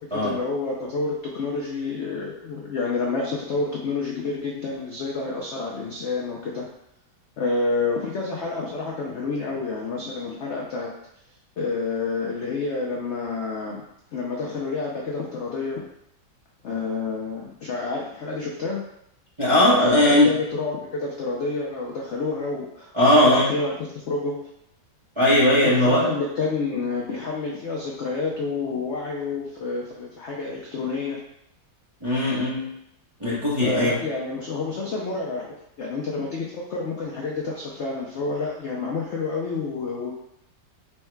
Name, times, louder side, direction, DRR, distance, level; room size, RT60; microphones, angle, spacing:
voice 1, 0.1-6.7 7.4-10.9 11.6-13.8 14.1-15.8 16.6-18.8 19.9-24.5 25.6-31.2 33.6-40.1, left 3 dB, 80° left, -2 dB, 0.6 m, -29 dB
voice 2, 19.4-20.3 22.9-23.5 25.2-26.1 32.0-32.7 33.2-34.0, left 1 dB, 30° right, -8 dB, 0.6 m, -18 dB
4.5 x 2.1 x 4.5 m, 0.79 s
omnidirectional pair, 1.9 m